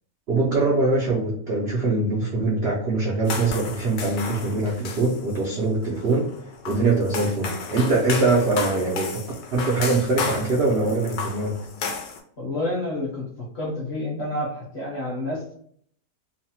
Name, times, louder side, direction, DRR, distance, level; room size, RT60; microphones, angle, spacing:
voice 1, 0.3-6.3 6.7-9.2 9.5-11.6, right 3 dB, 75° right, -4 dB, 0.5 m, -23 dB
sound 1, 3.2-12.2, left 5 dB, 90° left, 1.2 m, -33 dB
voice 2, 12.4-15.5, left 1 dB, 50° left, -3 dB, 0.9 m, -29 dB
3.0 x 2.0 x 2.8 m, 0.64 s
omnidirectional pair, 1.8 m